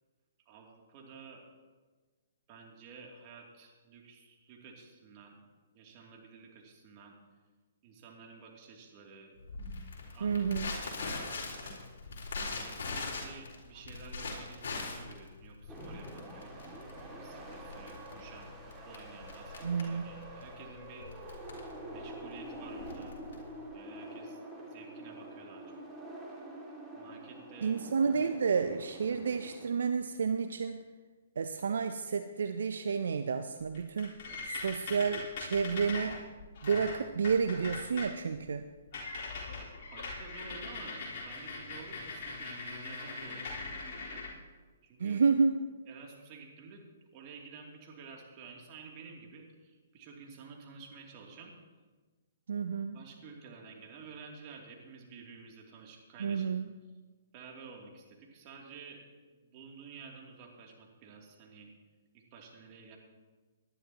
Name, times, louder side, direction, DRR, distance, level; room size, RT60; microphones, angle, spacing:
voice 1, 0.4-1.4 2.5-5.4 5.7-7.2 7.8-9.3 10.1-10.5 10.7-11.8 12.6-16.5 17.2-21.4 21.9-23.2 23.7-25.8 26.9-27.8 34.2-34.4 39.5-44.2 44.8-45.2 45.9-46.9 47.1-51.5 52.9-56.5 57.3-59.0 59.3-61.7 62.1-63.0, right 5 dB, 35° right, 0 dB, 2.8 m, -51 dB
Crackle, 9.5-23.7, left 3 dB, 65° left, 4.0 m, -41 dB
voice 2, 10.2-10.7 19.6-20.0 27.6-30.8 31.4-34.1 34.4-36.2 36.6-38.6 45.0-45.5 52.5-53.0 56.2-56.7, right 5 dB, 70° right, 9 dB, 0.6 m, -30 dB
sound 1, 15.7-29.7, right 1 dB, 10° right, 2.3 m, -47 dB
sound 2, 33.6-38.1 38.5-38.6 38.9-44.3, left 3 dB, 50° left, 4.0 m, -41 dB
19.0 x 11.5 x 3.0 m, 1.3 s
hypercardioid pair, 130°, 0 cm